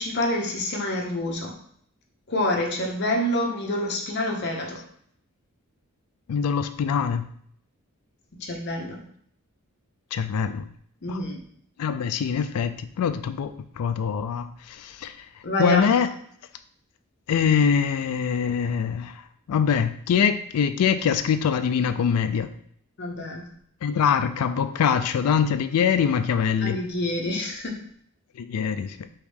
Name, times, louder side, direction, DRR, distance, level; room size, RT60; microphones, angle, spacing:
voice 1, 0.0-1.5 2.3-4.8 8.4-9.0 11.0-11.4 15.4-15.9 23.0-23.4 26.6-27.8, left 1 dB, 50° left, 1 dB, 0.8 m, -27 dB
voice 2, 6.3-7.2 10.1-10.6 11.1-11.2 11.8-15.1 15.6-16.1 17.3-19.2 19.5-22.5 23.8-26.8 28.4-29.1, left 7 dB, 85° left, 10 dB, 0.3 m, -23 dB
4.8 x 3.1 x 3.4 m, 0.63 s
head